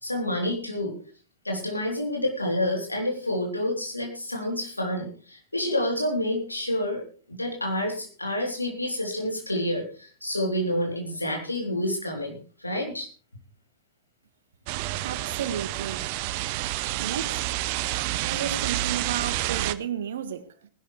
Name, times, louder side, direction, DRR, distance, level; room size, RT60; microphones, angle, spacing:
voice 1, 0.0-0.9 1.4-13.1, left 1 dB, 85° left, 3.5 m, -29 dB
sound 1, 14.7-19.7, right 16 dB, 45° right, 0.7 m, -29 dB
voice 2, 15.0-16.1 17.0-17.6 18.2-20.7, right 8 dB, 60° right, 1.4 m, -33 dB
19.0 x 11.5 x 3.4 m
figure-of-eight pair, 90°, 0 cm